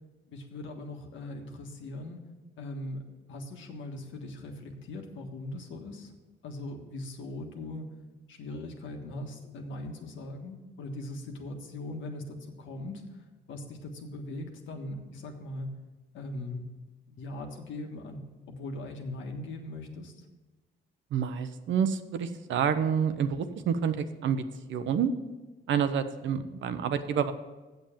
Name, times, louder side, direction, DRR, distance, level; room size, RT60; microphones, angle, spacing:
voice 1, 0.3-2.2 2.6-6.1 6.4-7.8 8.3-13.1 13.5-15.8 16.1-16.7 17.1-20.1, left 2 dB, 75° left, 3 dB, 1.5 m, -40 dB
voice 2, 21.1-24.4 24.7-25.1 25.7-27.3, right 7 dB, 70° right, 10 dB, 0.8 m, -28 dB
7.9 x 7.1 x 7.3 m, 1.2 s
cardioid pair, 90°, 20 cm